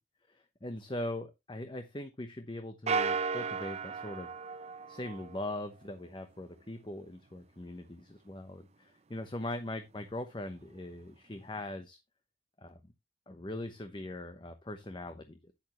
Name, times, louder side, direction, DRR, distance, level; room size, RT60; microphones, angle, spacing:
voice 1, 0.3-4.3 4.9-12.0 12.6-12.9 13.3-15.5, left 1 dB, 25° left, 8 dB, 0.9 m, -41 dB
sound 1, 2.9-5.6, right 5 dB, 40° right, 0.5 m, -34 dB
9.8 x 8.5 x 3.0 m, 0.22 s
head